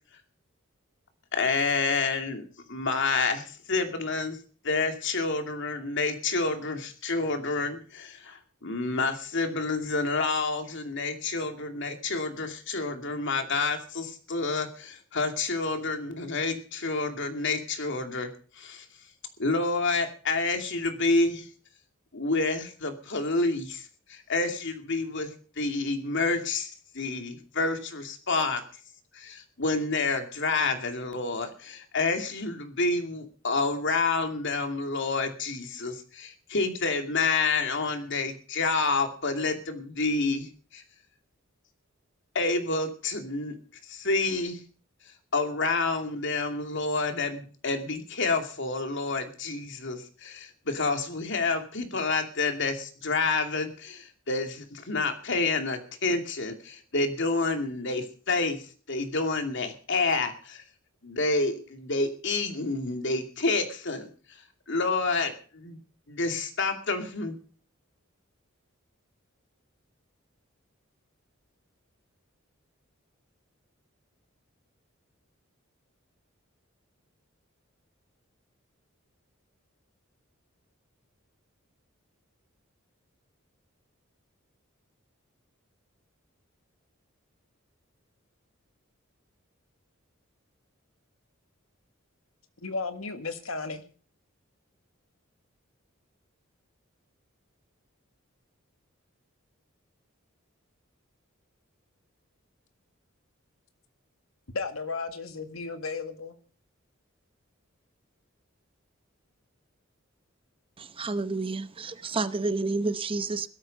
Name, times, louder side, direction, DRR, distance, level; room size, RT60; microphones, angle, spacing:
voice 1, 1.3-2.4 2.7-4.4 4.6-18.3 18.6-18.8 19.4-21.5 22.1-26.7 26.9-28.6 29.1-40.8 42.3-43.5 43.9-44.6 45.3-60.6 61.0-64.1 64.7-65.8 66.1-67.4, left 3 dB, 60° left, 2.6 m, -29 dB
voice 2, 92.6-93.8 104.5-106.4, left 4 dB, 85° left, 1.8 m, -34 dB
voice 3, 110.8-113.5, right 3 dB, 25° right, 0.9 m, -30 dB
17.0 x 13.0 x 5.4 m
head